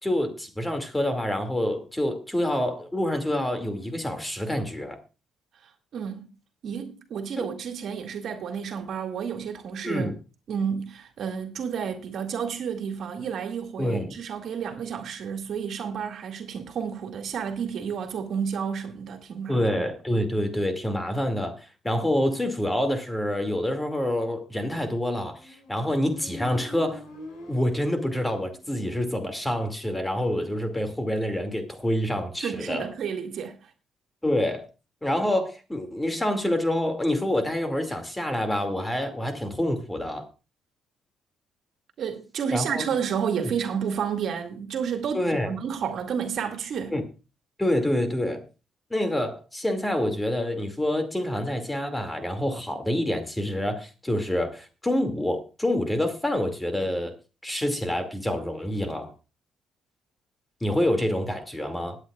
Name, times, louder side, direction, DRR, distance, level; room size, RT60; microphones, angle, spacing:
voice 1, 0.0-5.0 7.4-7.6 9.8-10.2 13.8-14.1 19.5-27.0 27.5-32.9 34.2-34.7 35.0-40.3 42.5-42.8 43.4-43.5 45.1-45.5 46.9-47.0 47.6-48.4 48.9-57.1 57.4-59.1 60.6-62.0, left 1 dB, 10° left, 2.3 m, -27 dB
voice 2, 5.9-6.3 6.6-10.1 10.5-19.9 32.4-33.6 42.0-47.0, right 7 dB, 65° right, 2.2 m, -31 dB
Motorcycle, 25.2-28.9, left 1 dB, 80° left, 5.3 m, -44 dB
20.0 x 9.2 x 2.4 m
cardioid pair, 90°, 0 cm